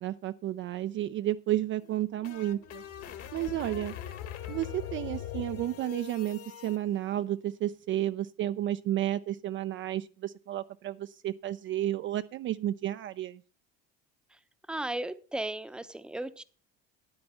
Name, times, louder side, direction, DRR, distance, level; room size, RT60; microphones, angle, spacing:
voice 1, 0.0-2.8 3.3-3.9 4.5-13.4, right 13 dB, 40° right, 11 dB, 0.4 m, -32 dB
sound 1, 1.8-6.8, left 10 dB, 50° left, 1.6 m, -41 dB
voice 2, 14.7-16.4, right 1 dB, 5° right, 12 dB, 0.7 m, -35 dB
9.6 x 8.8 x 5.5 m, 0.39 s
supercardioid pair, 100°, 30 cm